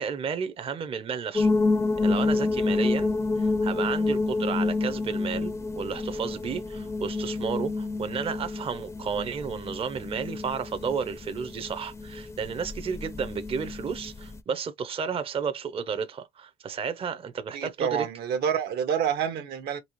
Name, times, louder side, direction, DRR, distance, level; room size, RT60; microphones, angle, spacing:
voice 1, 0.0-1.5 2.0-18.1, right 6 dB, 35° right, 0.6 m, -32 dB
sound 1, 1.4-14.4, left 3 dB, 15° left, 0.5 m, -28 dB
voice 2, 17.5-19.8, right 8 dB, 70° right, 1.0 m, -28 dB
4.1 x 2.7 x 3.0 m
cardioid pair, 110°, 17 cm